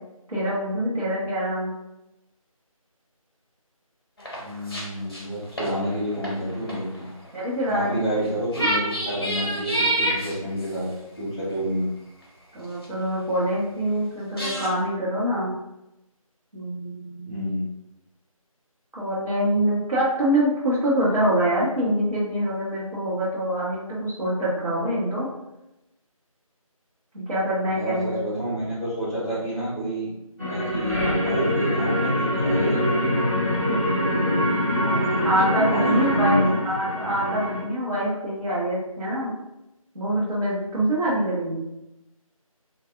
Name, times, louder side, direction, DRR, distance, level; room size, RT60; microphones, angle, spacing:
voice 1, 0.3-1.7 7.3-8.1 12.5-15.5 16.5-17.5 18.9-25.3 27.1-28.4 30.9-31.1 33.7-33.8 35.2-39.3 39.9-41.6, equal, 75° right, -11 dB, 1.2 m, -25 dB
sound 1, 4.2-4.8 5.1-7.3 8.2-8.3 8.5-10.7 11.5-11.6 12.8-12.9 14.4-14.7, right 1 dB, 45° left, 0.6 m, -27 dB
voice 2, 4.3-7.1 7.7-10.9 11.2-11.9 17.2-17.7 27.7-30.1 30.5-33.2 34.7-35.3 35.7-36.6, equal, 10° left, -13 dB, 0.8 m, -29 dB
sound 2, 30.4-37.6, equal, 30° right, 0.7 m, -23 dB
2.6 x 2.4 x 2.3 m, 0.92 s
figure-of-eight pair, 165°, 18 cm